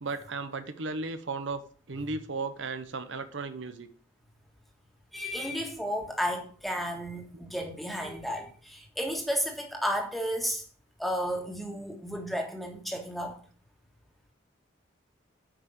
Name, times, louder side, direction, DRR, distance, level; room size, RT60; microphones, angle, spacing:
voice 1, 0.0-1.6 1.9-3.9, right 3 dB, 75° right, 0.9 m, -35 dB
voice 2, 5.1-10.6 11.0-13.4, equal, ahead, 1.6 m, -33 dB
8.5 x 5.7 x 6.5 m
head